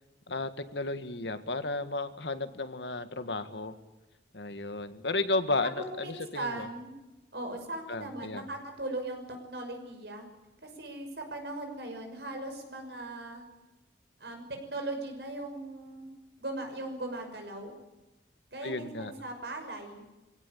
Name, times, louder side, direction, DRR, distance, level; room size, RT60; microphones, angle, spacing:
voice 1, 0.3-3.7 4.3-6.7 7.9-8.4 18.6-19.1, left 2 dB, 85° left, 10 dB, 1.8 m, -33 dB
voice 2, 6.0-6.9 7.3-10.3 10.6-13.4 14.2-16.1 16.4-17.8 18.5-20.0, right 2 dB, 70° right, 4 dB, 6.0 m, -39 dB
23.5 x 17.0 x 10.0 m, 1.0 s
head